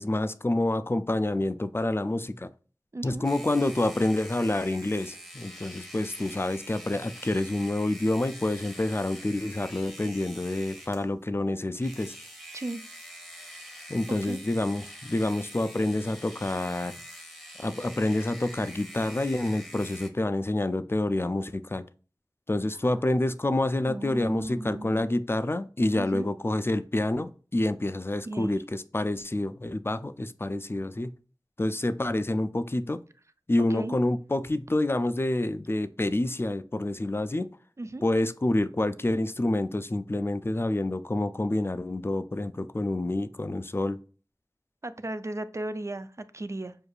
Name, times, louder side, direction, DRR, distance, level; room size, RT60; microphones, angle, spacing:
voice 1, 0.0-2.5 3.0-12.1 13.9-16.9 17.6-21.8 22.5-31.1 31.6-33.0 33.5-37.5 38.0-44.0, left 1 dB, 30° left, 12 dB, 0.3 m, -28 dB
voice 2, 2.9-3.3 12.5-12.8 14.2-14.4 23.9-25.1 25.9-26.3 28.3-28.6 33.6-34.0 37.8-38.0 44.8-46.8, right 2 dB, 40° right, 12 dB, 0.4 m, -35 dB
sound 1, 3.2-11.1 11.8-20.1, equal, ahead, 0.9 m, -45 dB
6.4 x 2.6 x 2.3 m, 0.38 s
wide cardioid pair, 40°, 8 cm